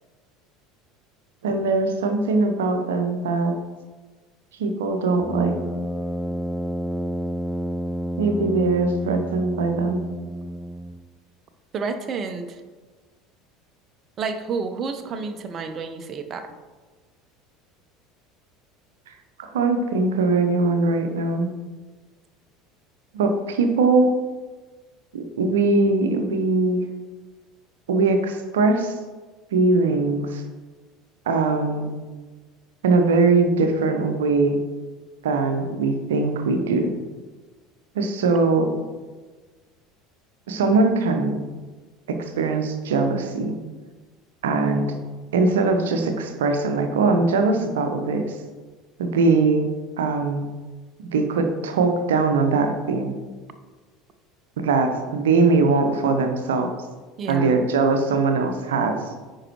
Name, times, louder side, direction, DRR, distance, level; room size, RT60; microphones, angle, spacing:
voice 1, 1.4-3.5 4.6-5.6 8.2-10.0 19.1-19.2 19.4-21.5 23.1-24.1 25.1-26.9 27.9-29.0 29.5-30.4 31.3-31.9 32.8-34.6 35.2-36.9 37.9-38.7 40.5-41.4 42.1-43.6 44.4-44.9 45.3-48.3 49.0-49.7 50.0-50.5 51.1-53.2 54.6-56.7 57.3-59.0, right 3 dB, 65° right, 6 dB, 0.8 m, -21 dB
Brass instrument, 5.2-11.1, right 1 dB, 5° left, 0.3 m, -30 dB
voice 2, 11.7-12.6 14.2-16.5 57.2-57.6, right 5 dB, 35° right, 8 dB, 0.7 m, -30 dB
9.8 x 4.7 x 3.0 m, 1.3 s
figure-of-eight pair, 70°, 0 cm